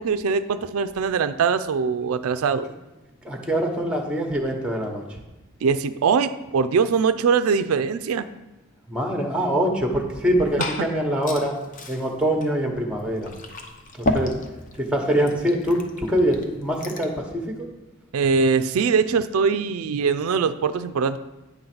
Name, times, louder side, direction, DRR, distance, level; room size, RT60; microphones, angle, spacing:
voice 1, 0.0-2.7 5.6-8.3 18.1-21.2, right 5 dB, 85° right, 11 dB, 0.4 m, -22 dB
voice 2, 3.2-5.2 8.9-11.5 11.9-13.3 14.0-14.3 14.8-17.7, right 1 dB, 5° right, 2 dB, 0.9 m, -24 dB
Liquid, 10.1-17.2, left 2 dB, 35° left, 0.7 m, -33 dB
9.1 x 3.9 x 5.9 m, 1.0 s
head